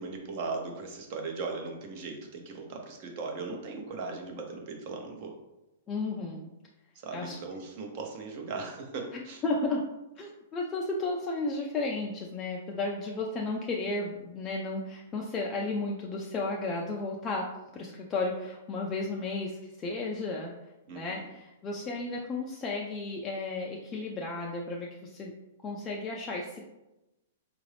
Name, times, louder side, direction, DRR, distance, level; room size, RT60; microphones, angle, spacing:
voice 1, 0.0-5.3 7.0-9.4 20.9-21.2, right 4 dB, 40° right, 2 dB, 0.8 m, -38 dB
voice 2, 5.9-6.5 7.1-7.4 9.1-9.8 10.2-17.5 17.7-20.5 20.9-25.3 25.6-26.8, left 3 dB, 20° left, -2 dB, 0.4 m, -33 dB
4.7 x 2.5 x 3.3 m, 0.98 s
hypercardioid pair, 160°, 0 cm